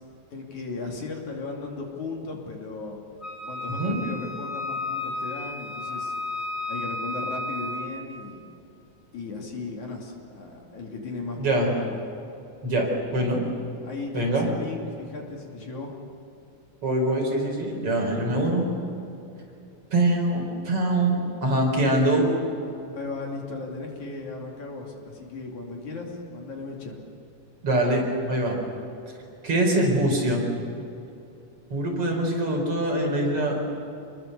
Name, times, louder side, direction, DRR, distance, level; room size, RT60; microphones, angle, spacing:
voice 1, 0.3-3.0 3.4-8.5 9.1-12.0 13.8-15.9 22.9-27.0, left 3 dB, 65° left, 0 dB, 4.0 m, -36 dB
Wind instrument woodwind instrument, 3.2-7.9, left 2 dB, 20° left, 5.3 m, -33 dB
voice 2, 11.4-11.7 12.6-13.4 14.1-14.5 16.8-18.7 19.9-22.3 27.6-28.6 29.4-30.4 31.7-33.6, right 1 dB, 45° right, 0 dB, 5.4 m, -23 dB
27.5 x 21.5 x 6.8 m, 2.7 s
omnidirectional pair, 3.7 m